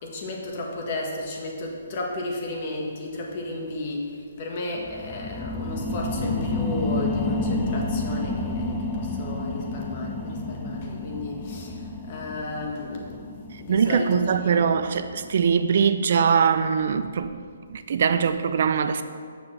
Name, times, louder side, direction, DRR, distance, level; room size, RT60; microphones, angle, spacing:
voice 1, 0.0-13.2 13.6-14.7, left 2 dB, 40° left, 1.6 m, -33 dB
sound 1, 4.8-15.9 16.4-16.5, left 2 dB, 10° left, 0.7 m, -30 dB
voice 2, 13.7-17.4 17.7-19.0, right 6 dB, 60° right, 0.4 m, -22 dB
7.1 x 5.9 x 6.1 m
hypercardioid pair, 150°, 0 cm